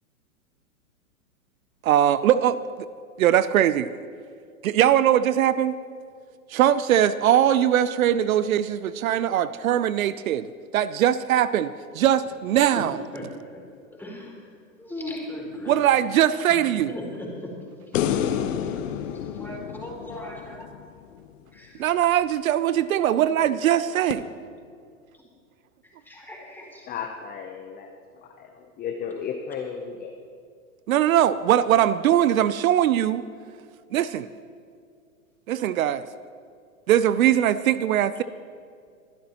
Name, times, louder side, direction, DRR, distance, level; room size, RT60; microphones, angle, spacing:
voice 1, 1.8-2.9 3.2-3.9 4.6-5.8 6.5-13.0 15.7-17.0 19.5-20.3 21.8-24.2 30.9-33.2 33.9-34.3 35.5-36.1 36.9-38.2, right 11 dB, 75° right, 15 dB, 0.6 m, -21 dB
voice 2, 13.1-13.6 14.0-14.3 14.8-15.8 16.9-17.5 19.4-20.7 21.5-21.9 26.1-26.9, left 1 dB, 5° left, -3 dB, 3.8 m, -37 dB
sound 1, 17.9-21.3 24.1-24.2, left 9 dB, 60° left, 1.0 m, -29 dB
voice 3, 26.9-30.1, left 7 dB, 20° left, 3 dB, 0.8 m, -35 dB
23.0 x 11.5 x 3.0 m, 2.3 s
hypercardioid pair, 115°, 42 cm